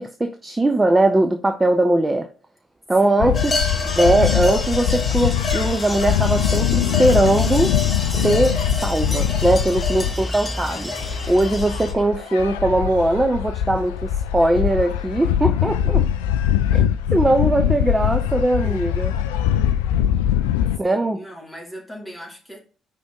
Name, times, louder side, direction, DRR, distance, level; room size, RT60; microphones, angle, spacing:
voice 1, 0.0-2.3 2.9-3.5 3.9-7.7 8.2-10.9 11.3-16.0 16.7-16.8 17.1-19.1 20.8-21.2, right 1 dB, 15° right, 0.6 m, -20 dB
voice 2, 3.0-4.0 9.6-9.7 10.0-10.2 14.9-15.0 18.6-19.2 20.8-22.6, equal, ahead, 2.6 m, -41 dB
sound 1, 3.2-20.8, left 10 dB, 70° left, 0.3 m, -22 dB
sound 2, 3.3-11.9, left 2 dB, 20° left, 1.1 m, -28 dB
5.1 x 3.7 x 5.2 m
figure-of-eight pair, 45°, 0 cm